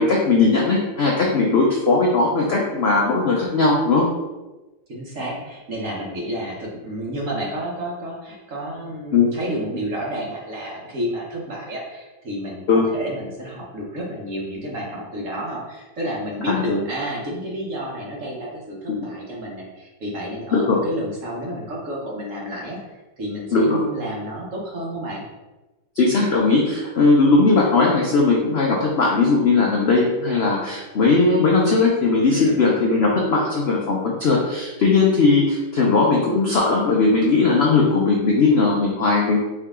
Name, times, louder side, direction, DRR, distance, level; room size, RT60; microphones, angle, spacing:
voice 1, 0.0-4.1 9.1-9.3 12.7-12.9 16.5-16.8 18.9-19.1 20.5-20.8 23.5-23.8 26.0-39.4, left 3 dB, 70° left, -2 dB, 0.6 m, -18 dB
voice 2, 4.9-25.2 32.3-32.6, equal, 50° right, -3 dB, 1.2 m, -30 dB
4.7 x 2.8 x 3.5 m, 1.1 s
omnidirectional pair, 1.8 m